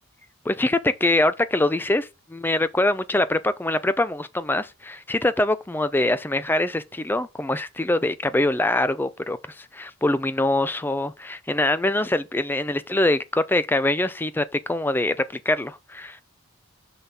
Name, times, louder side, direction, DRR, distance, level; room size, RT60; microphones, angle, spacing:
voice 1, 0.5-16.2, left 2 dB, 10° left, 0.3 m, -24 dB
5.7 x 5.6 x 3.8 m
head